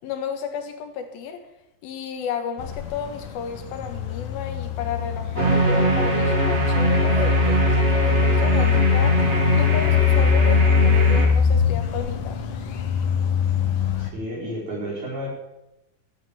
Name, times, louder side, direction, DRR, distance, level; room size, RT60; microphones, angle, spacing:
voice 1, 0.0-1.5 1.8-9.2 9.5-12.4, left 7 dB, 80° left, 6 dB, 3.3 m, -32 dB
sound 1, 2.6-14.1, left 6 dB, 65° left, 2.4 m, -22 dB
sound 2, 5.4-11.3, right 2 dB, 30° right, 1.3 m, -22 dB
voice 2, 14.0-15.3, equal, 80° right, -4 dB, 6.8 m, -31 dB
14.0 x 8.9 x 7.4 m, 0.89 s
omnidirectional pair, 4.2 m